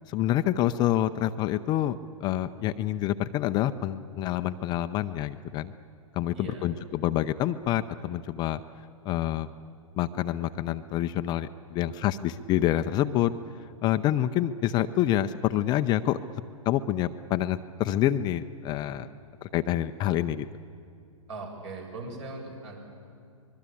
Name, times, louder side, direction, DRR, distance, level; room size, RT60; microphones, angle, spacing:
voice 1, 0.1-5.7 6.1-8.6 9.1-9.5 10.0-13.3 13.8-16.2 16.7-19.1 19.4-20.5, left 12 dB, 25° left, 10 dB, 0.6 m, -27 dB
voice 2, 6.3-6.7 18.8-19.0 21.3-22.8, right 3 dB, 60° right, 1 dB, 7.6 m, -40 dB
24.5 x 21.5 x 8.6 m, 2.5 s
hypercardioid pair, 125°, 17 cm